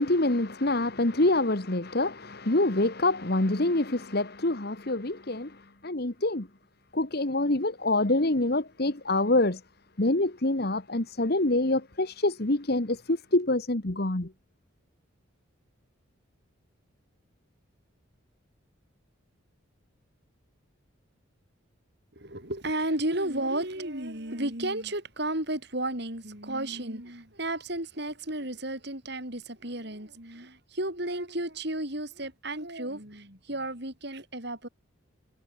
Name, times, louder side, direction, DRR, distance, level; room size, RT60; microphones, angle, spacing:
voice 1, 0.0-6.5 6.9-9.6 10.0-14.3, left 2 dB, 50° left, 1.5 m, -26 dB
voice 2, 22.2-34.7, right 1 dB, 55° right, 7.6 m, -33 dB
head